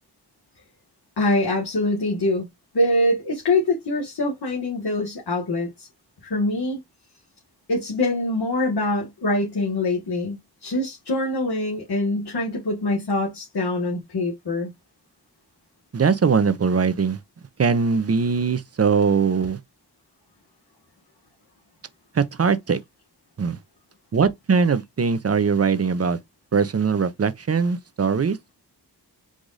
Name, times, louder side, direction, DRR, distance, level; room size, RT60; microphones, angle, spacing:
voice 1, 1.2-2.5 2.7-5.9 6.2-6.8 7.7-14.7, left 2 dB, 70° left, 1.6 m, -24 dB
voice 2, 15.9-17.2 17.6-19.6 22.1-22.8 23.4-23.6 24.1-26.2 26.5-28.5, right 5 dB, 40° right, 0.6 m, -21 dB
4.8 x 2.4 x 3.9 m
wide cardioid pair, 80°, 40 cm